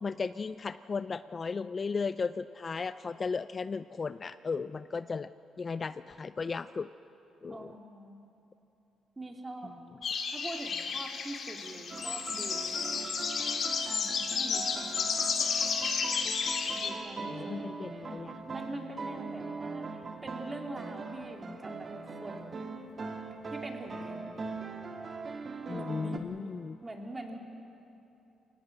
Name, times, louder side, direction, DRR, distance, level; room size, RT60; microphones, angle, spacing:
voice 1, 0.0-5.3 5.6-6.9 7.4-7.7 17.2-18.3 25.7-26.8, left 4 dB, 35° left, 13 dB, 0.4 m, -35 dB
voice 2, 7.5-8.2 9.2-9.8 10.3-13.2 13.9-15.2 16.7-17.6 17.9-18.1 18.5-22.8 23.5-24.4 25.7-26.5 26.8-27.4, right 1 dB, 20° right, 2 dB, 2.9 m, -44 dB
sound 1, 10.0-16.9, left 5 dB, 55° left, 2.2 m, -32 dB
sound 2, 11.9-26.2, right 4 dB, 40° right, 1.7 m, -41 dB
23.5 x 18.5 x 7.9 m, 2.9 s
cardioid pair, 90°, 0 cm